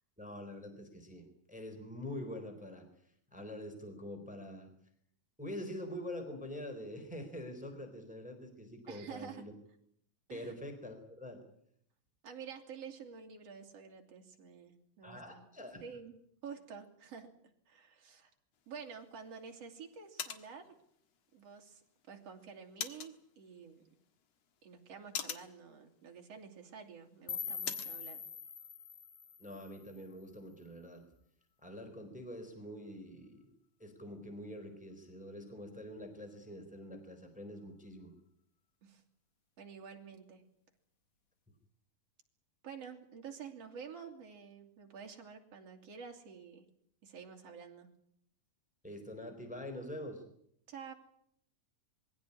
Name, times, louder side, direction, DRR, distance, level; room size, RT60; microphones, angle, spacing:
voice 1, 0.2-2.9 3.3-4.7 5.4-9.5 10.3-11.4 15.0-15.8 29.4-31.0 31.6-33.5 33.8-38.1 48.8-50.2, left 1 dB, ahead, 6 dB, 3.7 m, -45 dB
voice 2, 8.9-9.5 10.3-10.5 12.2-15.5 15.8-16.2 16.4-17.3 17.7-18.3 18.7-20.8 21.3-23.8 24.6-28.2 38.8-39.0 39.6-40.4 42.6-46.7 47.0-47.9 50.7-50.9, right 6 dB, 50° right, 3 dB, 3.4 m, -49 dB
sound 1, 18.5-28.0, left 8 dB, 55° left, 2.4 m, -48 dB
sound 2, 27.3-30.3, left 7 dB, 75° left, 0.7 m, -43 dB
22.5 x 16.5 x 9.9 m, 0.70 s
omnidirectional pair, 3.9 m